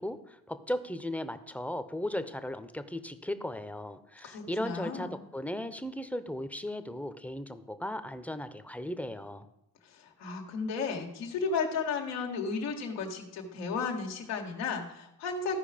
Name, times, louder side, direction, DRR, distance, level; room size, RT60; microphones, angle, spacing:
voice 1, 0.0-9.5, left 1 dB, 5° left, 10 dB, 0.8 m, -36 dB
voice 2, 4.2-5.2 9.8-15.6, left 4 dB, 90° left, 1 dB, 1.7 m, -34 dB
14.0 x 4.8 x 5.1 m, 0.83 s
supercardioid pair, 65°, 41 cm